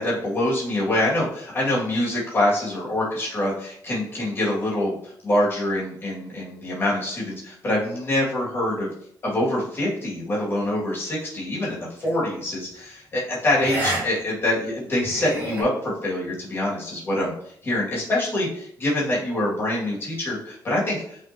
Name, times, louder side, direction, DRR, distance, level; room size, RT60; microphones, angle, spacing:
voice 1, 0.0-8.9 9.2-17.3 17.6-21.2, left 1 dB, 30° left, -5 dB, 2.2 m, -25 dB
sound 1, 12.0-12.2 13.6-14.0 14.4-14.5 15.0-15.6, right 1 dB, 25° right, 2.4 m, -28 dB
8.6 x 4.1 x 2.9 m, 0.67 s
wide cardioid pair, 180°, 8 cm